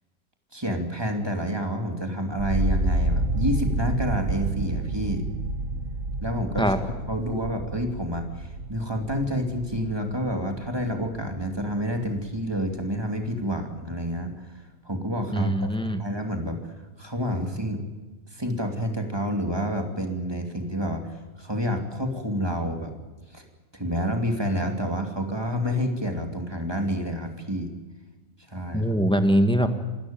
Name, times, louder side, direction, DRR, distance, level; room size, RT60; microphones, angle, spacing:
voice 1, 0.5-5.3 6.2-6.7 7.1-16.7 17.0-17.8 18.3-22.9 23.3-23.4 23.7-27.7 28.5-28.9, equal, 15° right, 4 dB, 2.7 m, -29 dB
sound 1, 2.4-12.4 12.7-13.4, right 2 dB, 55° right, 1.4 m, -30 dB
voice 2, 15.3-16.0 28.7-29.7, equal, 5° left, 7 dB, 1.5 m, -22 dB
27.0 x 13.0 x 8.9 m, 1.3 s
omnidirectional pair, 1.5 m